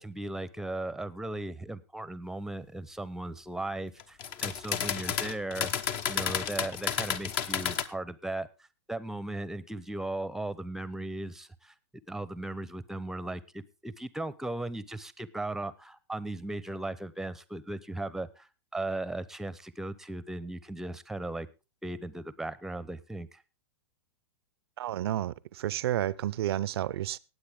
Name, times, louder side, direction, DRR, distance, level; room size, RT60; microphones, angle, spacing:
voice 1, 0.0-5.7 6.1-8.5 8.9-11.7 12.1-21.5 21.8-23.4, right 2 dB, 5° right, 0.8 m, -37 dB
sound 1, 4.0-7.8, left 8 dB, 40° left, 1.0 m, -31 dB
voice 2, 24.8-27.2, right 13 dB, 65° right, 0.6 m, -31 dB
18.5 x 8.0 x 3.7 m
hypercardioid pair, 110°, 14 cm